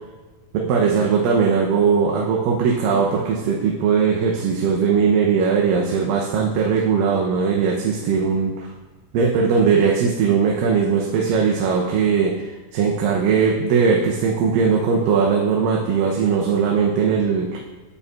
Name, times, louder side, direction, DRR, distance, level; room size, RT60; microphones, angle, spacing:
voice 1, 0.5-8.7 9.1-17.6, right 6 dB, 85° right, -1 dB, 2.4 m, -19 dB
9.5 x 8.1 x 2.3 m, 1.2 s
omnidirectional pair, 3.9 m